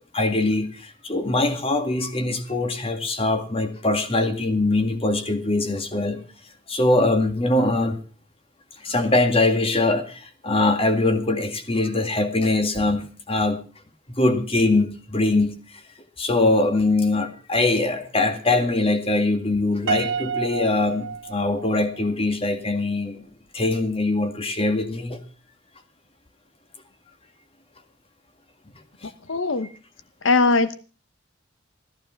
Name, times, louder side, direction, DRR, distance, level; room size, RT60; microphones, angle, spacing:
voice 1, 0.1-6.2 6.7-8.0 8.8-13.6 14.1-15.6 16.2-23.2 23.5-25.2 29.0-29.1, left 2 dB, 30° left, 7 dB, 2.0 m, -22 dB
Piano, 19.9-22.1, right 6 dB, 65° right, 1.5 m, -29 dB
voice 2, 29.3-29.7 30.2-30.7, left 3 dB, 80° left, 13 dB, 0.9 m, -19 dB
14.5 x 14.5 x 5.8 m, 0.37 s
head